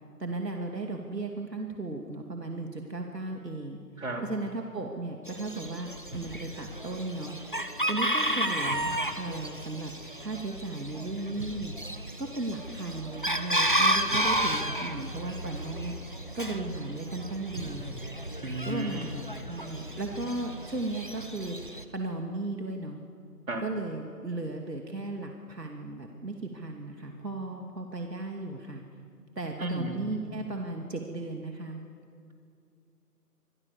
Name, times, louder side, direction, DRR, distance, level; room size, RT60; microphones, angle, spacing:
voice 1, 0.2-3.8 4.2-7.4 7.9-9.9 10.2-11.7 12.2-15.9 16.3-18.0 18.6-23.0 23.6-28.8 29.4-31.8, right 2 dB, 80° right, 2 dB, 2.7 m, -36 dB
Chicken rooster, 5.3-21.8, right 1 dB, 30° left, 1.0 m, -32 dB
Knock, 6.0-6.7 8.6-9.3 11.3-12.1 14.0-14.8 17.1-17.2 17.5-18.3, right 1 dB, 5° right, 3.0 m, -43 dB
voice 2, 18.4-19.1 23.5-23.7 29.6-30.2, right 1 dB, 55° right, 1 dB, 4.3 m, -34 dB
27.0 x 21.5 x 7.3 m, 2.4 s
figure-of-eight pair, 180°, 48 cm